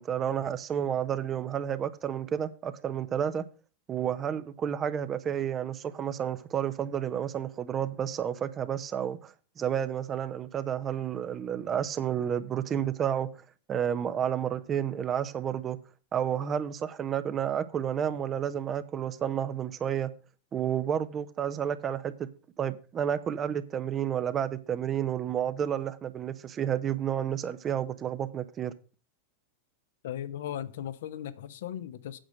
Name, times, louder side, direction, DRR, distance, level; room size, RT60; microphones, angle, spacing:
voice 1, 0.0-3.4 3.9-13.3 13.7-15.8 16.1-20.1 20.5-22.3 22.6-28.7, right 9 dB, 25° right, 0.8 m, -31 dB
voice 2, 30.0-32.2, left 10 dB, 55° left, 0.9 m, -37 dB
8.9 x 6.4 x 6.3 m
figure-of-eight pair, 90°, 0 cm